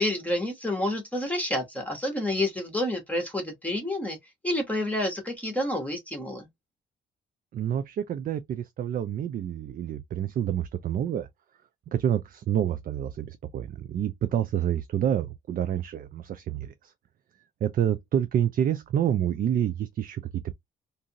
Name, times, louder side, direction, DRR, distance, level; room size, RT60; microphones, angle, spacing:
voice 1, 0.0-4.2 4.4-6.5, left 1 dB, 5° left, 1.0 m, -29 dB
voice 2, 7.5-11.3 11.9-16.9 17.6-20.5, right 10 dB, 45° right, 0.4 m, -28 dB
2.6 x 2.4 x 2.8 m
cardioid pair, 90°, 20 cm